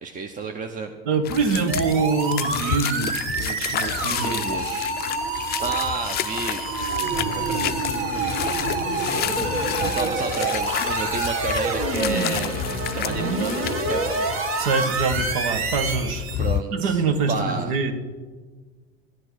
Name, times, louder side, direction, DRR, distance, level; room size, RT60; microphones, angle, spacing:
voice 1, 0.0-0.9 4.0-4.9 5.6-7.9 9.1-9.5 9.9-12.6 12.9-14.3 16.4-17.0 17.3-17.7, right 4 dB, 25° right, 5 dB, 0.8 m, -31 dB
voice 2, 1.0-4.4 14.6-16.4 16.7-17.9, right 4 dB, 80° right, 8 dB, 1.6 m, -25 dB
sound 1, 1.2-16.6, left 12 dB, 35° left, 0.4 m, -31 dB
sound 2, 1.7-16.5, right 3 dB, 50° right, 1.8 m, -27 dB
13.0 x 8.3 x 6.3 m, 1.4 s
supercardioid pair, 110°, 29 cm